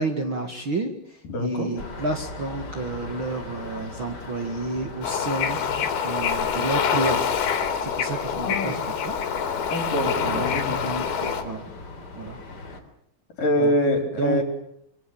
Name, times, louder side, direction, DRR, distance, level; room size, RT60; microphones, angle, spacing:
voice 1, 0.0-5.6 6.0-7.2 7.8-9.2 10.2-10.5 10.8-11.7 12.2-12.4 13.6-13.7 14.2-14.4, right 3 dB, 40° right, 5 dB, 2.2 m, -30 dB
voice 2, 1.3-1.7 8.3-8.8 9.7-10.8 13.4-14.4, left 1 dB, 60° left, 5 dB, 5.7 m, -24 dB
sound 1, 1.8-12.8, left 2 dB, 30° left, 3.7 m, -40 dB
Bird / Ocean, 5.0-11.4, left 7 dB, 85° left, 4.5 m, -26 dB
26.5 x 24.5 x 7.4 m, 0.73 s
omnidirectional pair, 4.4 m